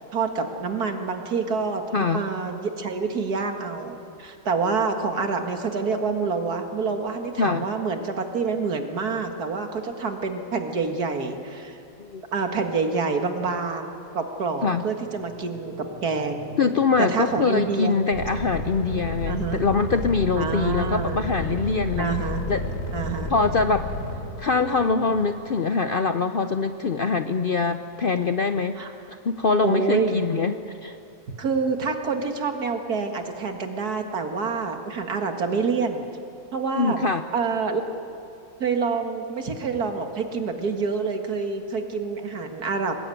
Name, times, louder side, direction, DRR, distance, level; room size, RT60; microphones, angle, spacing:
voice 1, 0.0-11.8 12.3-16.5 17.0-17.9 19.2-19.6 20.4-21.2 22.0-22.4 22.9-23.3 28.8-28.9 29.6-30.1 31.4-36.1 36.5-37.0 37.3-37.8 38.6-43.0, right 4 dB, 75° right, 5 dB, 2.3 m, -27 dB
voice 2, 1.9-2.2 7.4-7.7 12.0-12.2 14.6-14.8 16.6-22.1 22.5-22.6 23.3-23.9 24.4-28.8 29.1-31.0 36.8-37.2, left 4 dB, 55° left, 9 dB, 0.6 m, -23 dB
sound 1, 15.0-25.3, left 1 dB, 30° left, 4.6 m, -41 dB
sound 2, 18.1-24.2, left 2 dB, 75° left, 3.2 m, -31 dB
22.5 x 19.5 x 9.2 m, 2.6 s
omnidirectional pair, 1.6 m